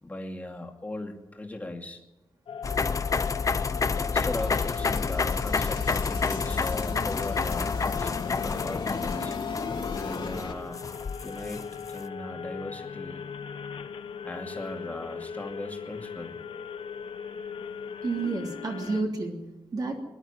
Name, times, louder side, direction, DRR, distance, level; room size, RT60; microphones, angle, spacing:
voice 1, 0.0-2.0 4.0-9.4 9.9-10.8 11.2-13.3 14.2-16.4, left 2 dB, 15° left, 2 dB, 2.5 m, -38 dB
sound 1, 2.5-19.0, left 7 dB, 85° left, 1.3 m, -38 dB
sound 2, 2.6-11.9, left 4 dB, 35° left, 0.8 m, -29 dB
sound 3, 4.4-10.5, left 4 dB, 60° left, 2.9 m, -36 dB
voice 2, 18.0-20.0, right 3 dB, 45° right, 0 dB, 3.2 m, -30 dB
21.5 x 12.0 x 9.9 m, 1.0 s
wide cardioid pair, 165°, 9 cm